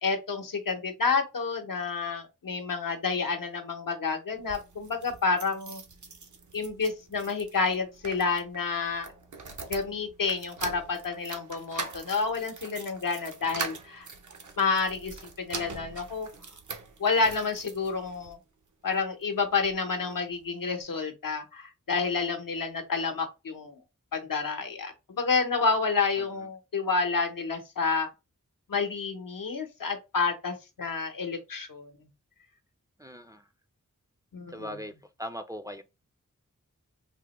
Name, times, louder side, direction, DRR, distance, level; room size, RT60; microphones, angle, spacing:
voice 1, 0.0-5.8 6.5-9.1 9.7-14.1 14.6-15.1 15.5-16.3 17.0-18.4 18.8-23.8 24.1-28.1 28.7-31.9 34.3-34.8, left 4 dB, 85° left, 0.7 m, -29 dB
sound 1, 4.3-18.3 18.9-19.8 20.1-20.2 20.4-20.5, right 4 dB, 65° right, 0.7 m, -43 dB
voice 2, 33.0-33.4 34.5-34.9 35.2-35.8, equal, 10° right, 0.3 m, -39 dB
3.4 x 2.1 x 2.9 m
wide cardioid pair, 45°, 33 cm